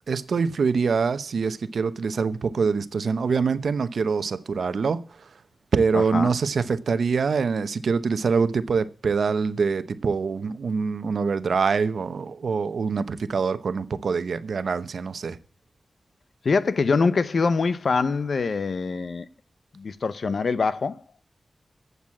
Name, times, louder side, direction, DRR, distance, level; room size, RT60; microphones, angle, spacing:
voice 1, 0.1-5.0 5.7-15.4, right 5 dB, 85° right, 0.9 m, -24 dB
voice 2, 5.9-6.3 16.4-19.3 19.7-21.0, left 4 dB, 65° left, 0.8 m, -24 dB
12.0 x 8.2 x 8.6 m
wide cardioid pair, 110°, 0 cm